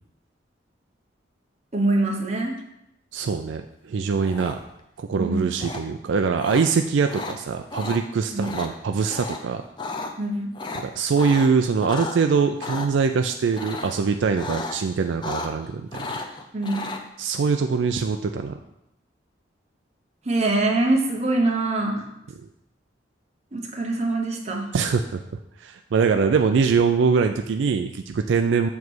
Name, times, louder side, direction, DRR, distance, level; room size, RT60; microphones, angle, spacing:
voice 1, 1.7-2.5 5.1-5.5 8.3-8.5 10.2-10.5 16.5-16.9 20.3-22.0 23.5-24.7, right 2 dB, 35° right, 1 dB, 0.9 m, -24 dB
voice 2, 3.1-4.6 5.0-9.6 10.7-16.1 17.2-18.6 24.7-25.2 25.6-28.7, right 5 dB, 75° right, 6 dB, 0.4 m, -23 dB
sound 1, 4.2-4.8 5.6-5.8 6.4-6.6 7.1-7.4 7.7-8.0 8.4-8.7 9.1-9.4 9.7-10.1 10.5-12.2 12.6-12.9 13.5-14.0 14.4-14.8 15.0-15.7 15.9-17.0, left 3 dB, 25° left, 0.5 m, -33 dB
7.2 x 3.2 x 6.1 m, 0.82 s
head